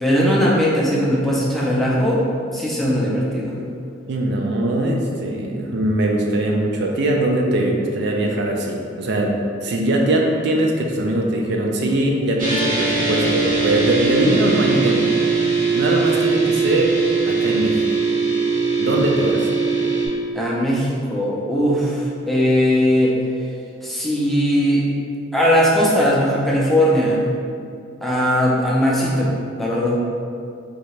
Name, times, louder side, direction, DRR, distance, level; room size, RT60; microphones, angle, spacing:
voice 1, 0.0-2.2 2.5-3.6 20.3-23.1 23.8-24.9 25.3-27.2 28.0-30.0, equal, ahead, -6 dB, 0.5 m, -19 dB
voice 2, 4.1-15.1 15.7-17.8 18.8-19.5, right 1 dB, 60° right, 0 dB, 0.4 m, -21 dB
sound 1, 12.4-20.1, right 4 dB, 45° right, 0.8 m, -20 dB
3.2 x 2.8 x 3.1 m, 2.3 s
head